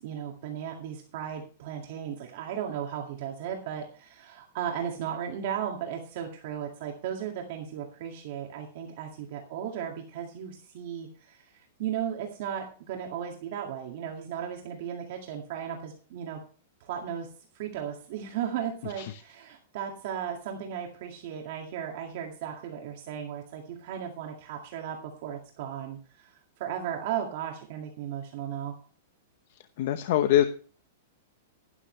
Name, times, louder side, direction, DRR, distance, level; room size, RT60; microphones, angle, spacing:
voice 1, 0.0-16.4 16.8-17.3 17.5-28.8, right 9 dB, 50° right, 1 dB, 2.1 m, -36 dB
voice 2, 29.8-30.5, left 12 dB, 50° left, 9 dB, 0.9 m, -23 dB
12.0 x 11.5 x 3.3 m, 0.40 s
supercardioid pair, 165°, 0 cm